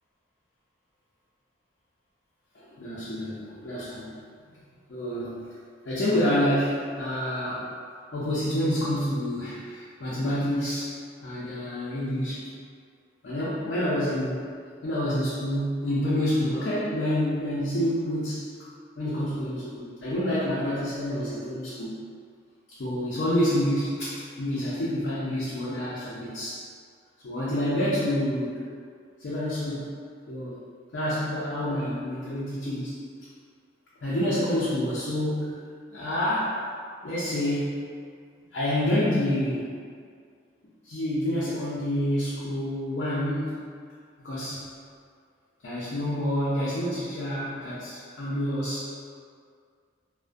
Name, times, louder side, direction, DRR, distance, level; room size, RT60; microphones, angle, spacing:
voice 1, 2.8-4.1 4.9-5.4 5.9-7.7 8.1-11.0 11.2-12.4 13.2-14.5 14.8-18.5 19.0-22.0 22.8-26.7 27.2-28.7 29.2-29.9 30.3-30.6 30.9-32.9 34.0-35.6 35.9-36.6 37.0-37.9 38.5-39.7 40.9-43.6 44.2-44.7 45.6-48.9, left 1 dB, 65° left, -9 dB, 0.4 m, -28 dB
2.4 x 2.1 x 2.5 m, 2.1 s
head